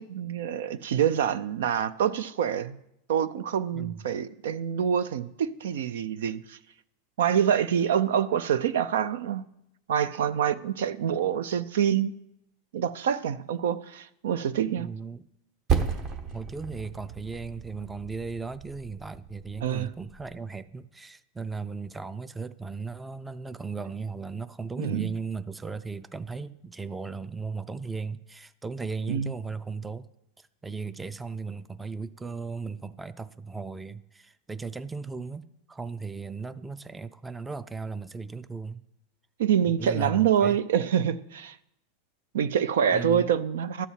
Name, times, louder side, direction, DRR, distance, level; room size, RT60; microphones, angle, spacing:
voice 1, 0.0-2.8 3.1-6.6 7.2-9.4 9.9-12.1 12.7-14.9 19.6-19.9 24.8-25.1 29.1-29.3 39.4-41.6 42.3-43.9, right 8 dB, 80° right, 0.5 m, -26 dB
voice 2, 14.8-15.2 16.3-30.1 30.4-35.4 35.7-38.8 39.6-40.6 42.9-43.3, right 4 dB, 10° right, 0.4 m, -36 dB
Percussion, 15.7-20.5, right 7 dB, 40° right, 1.1 m, -33 dB
12.0 x 4.1 x 7.4 m
supercardioid pair, 125°, 0 cm